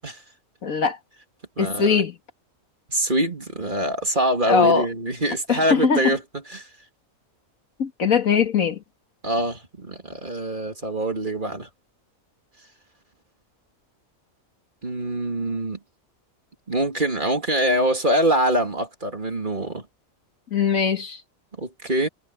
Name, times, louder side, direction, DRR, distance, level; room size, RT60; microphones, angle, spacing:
voice 1, 0.6-1.0 1.6-2.1 4.5-4.9 5.5-6.0 7.8-8.8 20.5-21.2, left 6 dB, 75° left, 2.3 m, -20 dB
voice 2, 1.6-2.0 2.9-6.7 9.2-11.7 14.8-15.8 16.7-19.8 21.6-22.1, right 1 dB, 35° right, 2.9 m, -24 dB
omnidirectional pair, 1.4 m